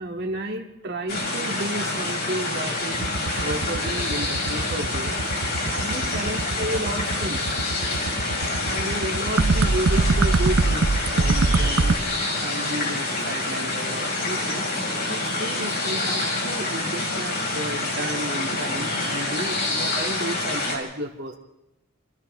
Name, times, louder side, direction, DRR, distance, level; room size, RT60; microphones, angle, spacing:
voice 1, 0.0-3.0 3.4-5.2 5.7-7.4 8.7-12.0 12.4-14.7 15.1-21.4, right 1 dB, 50° right, 2 dB, 2.5 m, -32 dB
sound 1, 1.1-20.8, left 2 dB, 45° left, 5.3 m, -27 dB
sound 2, 2.9-11.9, right 3 dB, 75° right, 0.8 m, -23 dB
29.0 x 27.0 x 3.4 m, 0.91 s
head